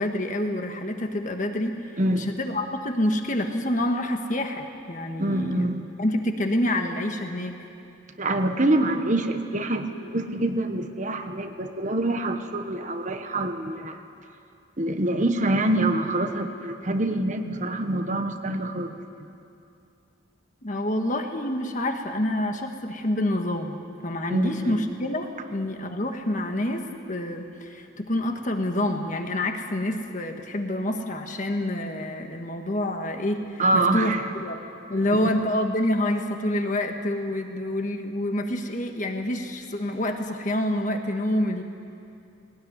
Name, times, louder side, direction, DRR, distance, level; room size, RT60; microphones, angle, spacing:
voice 1, 0.0-5.7 6.0-7.6 20.6-23.8 24.0-34.6 34.9-41.6, left 1 dB, 35° left, 4 dB, 1.5 m, -27 dB
voice 2, 2.0-2.3 5.2-5.9 8.2-14.0 14.8-18.9 24.3-24.8 33.6-34.2 34.9-35.3, right 1 dB, 35° right, 6 dB, 1.1 m, -25 dB
19.5 x 19.0 x 9.6 m, 2.6 s
head